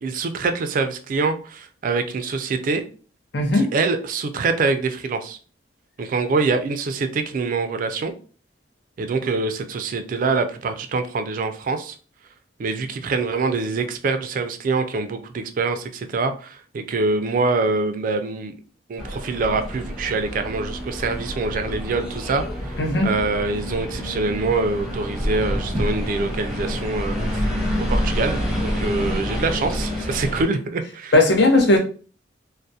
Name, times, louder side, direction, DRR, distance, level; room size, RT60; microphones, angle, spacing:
voice 1, 0.0-2.8 3.5-5.4 6.0-8.1 9.0-12.0 12.6-18.6 18.9-31.1, right 3 dB, 50° right, 0.3 m, -25 dB
voice 2, 3.3-3.7 22.8-23.1 31.1-31.8, left 2 dB, 65° left, 0.6 m, -17 dB
sound 1, 19.0-30.4, equal, ahead, 0.8 m, -27 dB
2.3 x 2.0 x 2.6 m
head